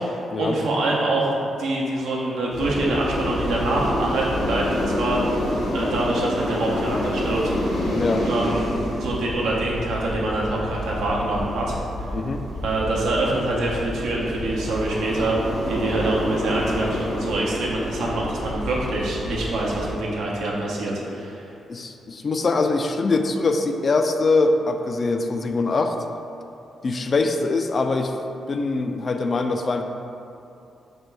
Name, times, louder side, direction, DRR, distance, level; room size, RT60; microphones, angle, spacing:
voice 1, 0.0-1.3 1.6-7.5 8.2-12.1 12.6-21.5, right 2 dB, 85° right, -4 dB, 0.7 m, -25 dB
sound 1, 2.5-19.9, left 1 dB, 80° left, 0.9 m, -28 dB
voice 2, 7.9-8.3 12.1-12.4 21.7-26.0 26.8-28.1 28.5-29.8, left 3 dB, 50° left, 6 dB, 0.3 m, -23 dB
4.4 x 2.2 x 4.5 m, 2.7 s
cardioid pair, 60°, 0 cm